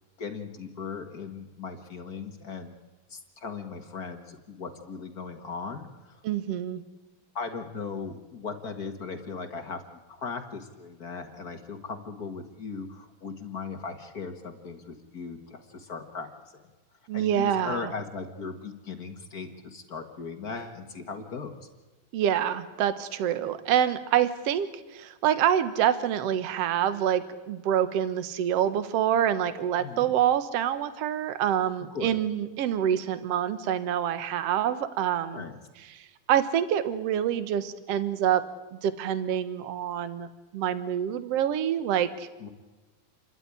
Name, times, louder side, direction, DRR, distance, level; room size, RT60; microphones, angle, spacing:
voice 1, 0.2-2.7 3.1-6.2 7.3-9.8 10.1-16.6 17.1-21.7 29.8-30.1 31.9-32.2 35.3-35.6 42.4-42.5, left 5 dB, 45° left, 5 dB, 1.2 m, -38 dB
voice 2, 6.2-6.8 17.1-17.9 22.1-35.4 36.3-38.4 38.8-40.3 40.5-42.3, right 10 dB, 60° right, 12 dB, 1.8 m, -26 dB
29.0 x 13.0 x 9.8 m, 1.2 s
omnidirectional pair, 4.1 m